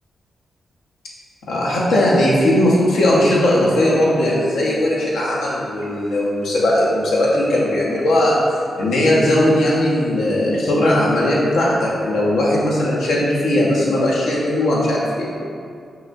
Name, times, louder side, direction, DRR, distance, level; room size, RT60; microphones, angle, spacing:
voice 1, 1.5-8.4 8.8-15.3, left 1 dB, 80° left, -5 dB, 0.8 m, -18 dB
5.8 x 2.5 x 2.6 m, 2.3 s
hypercardioid pair, 40°, 0 cm